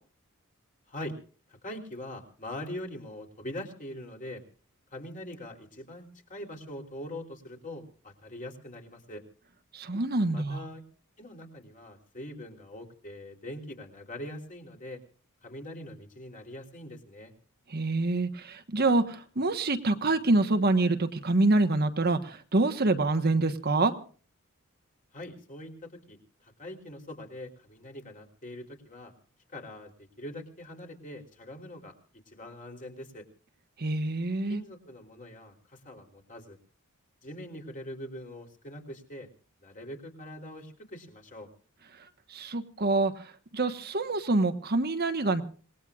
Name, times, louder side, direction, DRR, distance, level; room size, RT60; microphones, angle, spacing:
voice 1, 1.5-4.4 4.9-9.2 10.3-10.8 11.2-15.0 15.4-17.3 25.1-29.1 29.5-29.9 30.2-31.9 32.3-33.3 34.5-36.6 37.2-39.3 39.6-41.5, left 1 dB, 35° left, 2 dB, 3.3 m, -42 dB
voice 2, 9.7-10.6 17.7-23.9 33.8-34.6 42.3-45.4, right 2 dB, 45° right, 7 dB, 1.3 m, -26 dB
27.0 x 19.0 x 2.4 m, 0.41 s
head